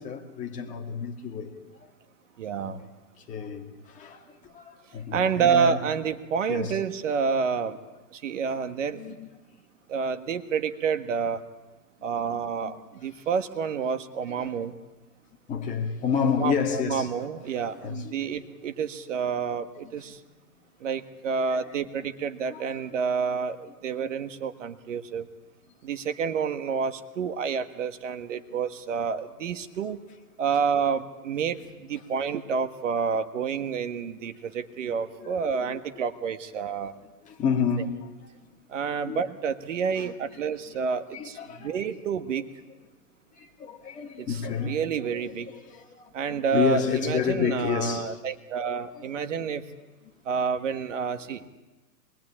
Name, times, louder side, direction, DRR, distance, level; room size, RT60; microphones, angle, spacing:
voice 1, 0.0-1.5 1.8-1.9 2.6-2.8 3.2-5.8 6.5-6.8 8.9-9.3 12.3-12.9 14.4-14.5 15.5-17.1 17.6-18.4 21.4-21.6 22.5-22.6 35.2-35.8 36.8-36.9 37.2-38.3 39.0-39.2 39.9-40.1 41.1-41.9 43.4-48.2 48.9-49.0, left 7 dB, 15° left, 2.3 m, -30 dB
voice 2, 2.4-2.8 5.1-7.8 8.1-9.1 9.9-11.4 12.0-14.8 16.4-20.2 20.8-25.3 25.8-30.0 30.4-31.6 31.9-37.0 38.7-42.4 44.2-45.5 46.1-49.6 50.2-51.5, right 6 dB, 50° right, 1.6 m, -29 dB
24.5 x 21.5 x 8.8 m
hypercardioid pair, 145°, 48 cm